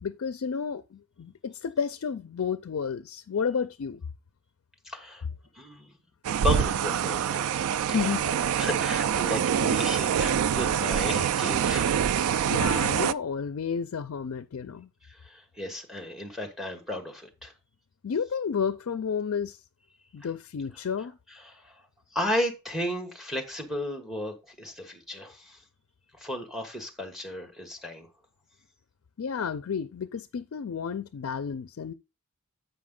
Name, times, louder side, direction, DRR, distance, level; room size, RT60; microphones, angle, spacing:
voice 1, 0.0-4.0 7.9-8.2 12.5-14.9 18.0-19.6 20.1-21.1 29.2-31.9, left 6 dB, 60° left, 0.4 m, -31 dB
voice 2, 4.8-5.2 5.5-5.9 6.4-7.4 8.0-12.2 15.1-17.5 21.4-21.7 22.1-25.6 26.2-28.1, left 1 dB, ahead, 1.2 m, -34 dB
sound 1, 6.2-13.1, right 8 dB, 70° right, 0.3 m, -25 dB
7.9 x 5.2 x 3.7 m
head